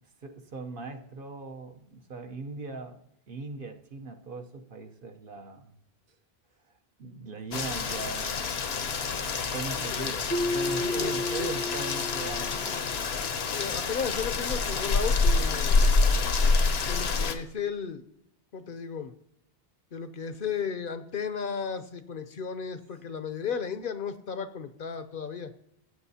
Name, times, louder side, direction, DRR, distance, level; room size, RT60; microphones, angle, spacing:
voice 1, 0.2-5.7 7.0-12.8, right 3 dB, 60° right, 4 dB, 1.0 m, -40 dB
Rain, 7.5-17.3, left 4 dB, 80° left, 1.1 m, -27 dB
Keyboard (musical), 10.3-13.1, left 1 dB, 20° left, 0.6 m, -32 dB
voice 2, 10.8-11.5 13.5-15.8 16.9-18.0 18.5-19.1 19.9-25.5, left 6 dB, 60° left, 11 dB, 0.8 m, -34 dB
16.0 x 7.8 x 2.8 m, 0.77 s
omnidirectional pair, 1.1 m